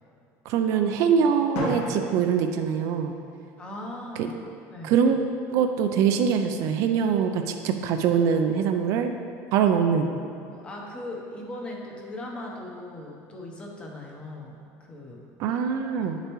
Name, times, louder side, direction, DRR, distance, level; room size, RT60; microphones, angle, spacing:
voice 1, 0.5-3.1 4.8-5.2 5.5-9.1 9.5-10.1 15.4-16.2, right 7 dB, 50° right, 6 dB, 0.4 m, -23 dB
Drum, 1.5-3.5, left 1 dB, 75° left, 1.5 m, -34 dB
voice 2, 3.6-4.3 4.7-5.0 10.5-14.6 14.9-15.2 15.5-16.2, left 1 dB, 15° left, -1 dB, 0.8 m, -39 dB
9.2 x 6.6 x 3.1 m, 2.5 s
cardioid pair, 170°, 7 cm